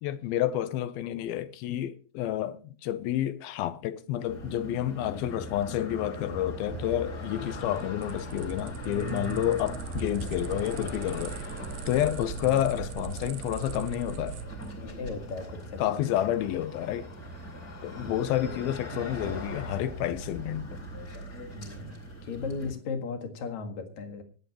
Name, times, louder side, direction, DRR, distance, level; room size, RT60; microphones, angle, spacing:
voice 1, 0.0-11.4 11.9-14.4 15.8-17.1 17.8-20.8, left 12 dB, 80° left, 2.4 m, -30 dB
sound 1, 4.3-22.7, equal, 20° left, 3.8 m, -40 dB
sound 2, 7.1-14.7, right 8 dB, 85° right, 2.8 m, -40 dB
voice 2, 12.3-12.7 14.8-15.8 16.1-16.4 17.9-18.7 20.7-20.9 21.5-22.0 22.2-24.2, left 4 dB, 55° left, 2.7 m, -37 dB
24.0 x 9.1 x 3.0 m
omnidirectional pair, 4.6 m